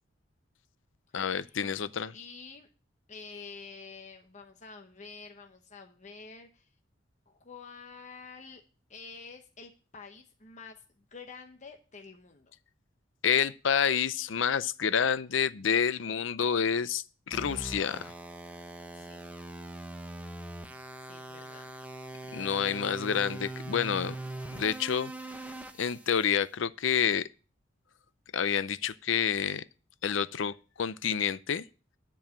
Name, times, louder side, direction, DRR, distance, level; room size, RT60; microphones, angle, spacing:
voice 1, 1.1-2.1 13.2-18.1 22.3-24.2 24.5-25.1 25.8-27.3 28.3-29.6 30.0-31.7, left 7 dB, 75° left, 0.5 m, -28 dB
voice 2, 2.1-2.7 3.1-6.7 7.3-8.6 8.9-12.5 18.9-19.4 21.0-21.7 22.5-22.8, left 5 dB, 40° left, 0.9 m, -48 dB
atari punk console, 17.3-26.3, right 1 dB, 5° right, 0.8 m, -42 dB
10.5 x 4.7 x 7.1 m
head